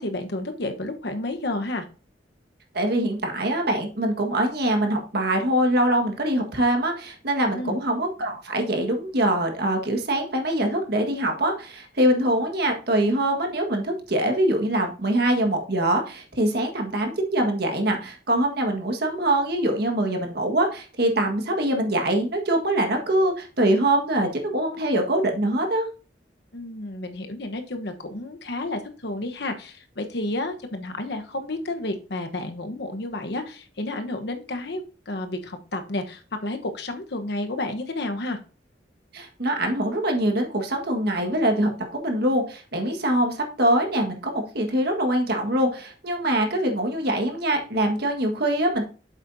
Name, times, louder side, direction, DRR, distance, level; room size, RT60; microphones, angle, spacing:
voice 1, 0.0-1.8 7.5-7.8 26.5-38.4, left 2 dB, 65° left, 6 dB, 1.1 m, -31 dB
voice 2, 2.7-25.9 39.1-48.8, right 1 dB, 65° right, 3 dB, 1.7 m, -23 dB
8.6 x 7.3 x 2.7 m, 0.36 s
head